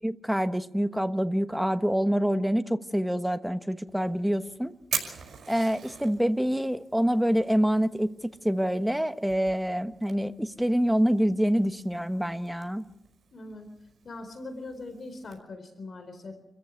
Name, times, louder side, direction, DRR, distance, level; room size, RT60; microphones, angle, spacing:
voice 1, 0.0-4.7 5.5-8.2 8.4-12.9, equal, 5° right, 9 dB, 1.2 m, -26 dB
Fire, 3.9-15.4, right 7 dB, 85° right, 5.5 m, -43 dB
voice 2, 13.3-13.7 14.0-16.4, left 2 dB, 60° left, 7 dB, 4.1 m, -41 dB
28.5 x 14.5 x 8.4 m, 0.89 s
cardioid pair, 85°, 0 cm